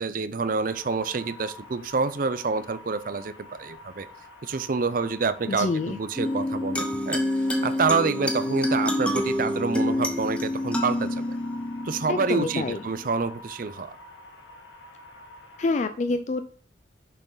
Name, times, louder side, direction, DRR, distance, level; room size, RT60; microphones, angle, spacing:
voice 1, 0.0-4.1 4.4-7.2 7.6-11.2 11.8-14.0, right 4 dB, 45° right, 13 dB, 0.5 m, -27 dB
sound 1, 0.7-15.7, left 2 dB, 65° left, 1.8 m, -47 dB
voice 2, 5.5-6.0 12.1-12.8 15.6-16.4, left 3 dB, 35° left, 9 dB, 0.3 m, -27 dB
sound 2, 6.2-13.1, left 1 dB, 5° left, 0.9 m, -28 dB
6.7 x 6.0 x 3.9 m, 0.43 s
head